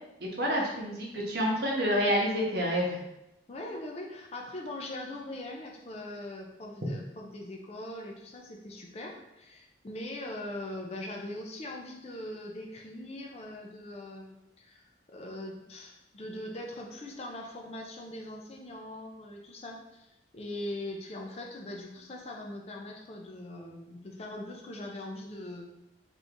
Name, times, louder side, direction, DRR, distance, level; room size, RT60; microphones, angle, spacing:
voice 1, 0.2-3.0, equal, 60° right, -2 dB, 0.8 m, -28 dB
voice 2, 3.5-25.8, left 1 dB, 35° left, 1 dB, 0.4 m, -41 dB
2.9 x 2.6 x 3.5 m, 0.89 s
head